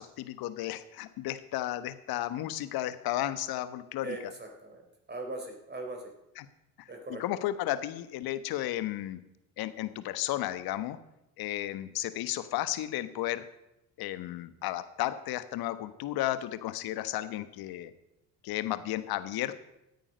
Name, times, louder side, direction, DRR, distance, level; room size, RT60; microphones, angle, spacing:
voice 1, 0.0-4.3 6.4-6.5 6.8-9.2 9.6-11.0 11.4-13.5 14.0-17.9 18.4-19.6, left 14 dB, 55° left, 13 dB, 1.2 m, -33 dB
voice 2, 4.0-4.8 5.1-6.1 6.9-7.2, right 2 dB, 25° right, 3 dB, 3.7 m, -40 dB
16.5 x 9.2 x 5.2 m, 0.88 s
hypercardioid pair, 65°, 44 cm